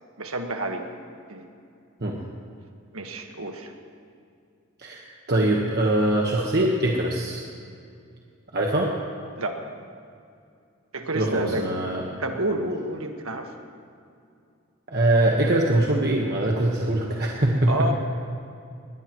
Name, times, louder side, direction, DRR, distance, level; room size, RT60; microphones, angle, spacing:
voice 1, 0.2-0.8 1.3-1.4 2.9-3.7 9.4-9.6 10.9-11.7 12.1-13.5 17.7-17.9, right 1 dB, 85° right, 4 dB, 1.6 m, -29 dB
voice 2, 5.3-7.4 8.5-8.9 11.1-12.0 14.9-17.9, right 1 dB, 50° right, -2 dB, 1.3 m, -22 dB
21.5 x 18.0 x 3.1 m, 2.4 s
head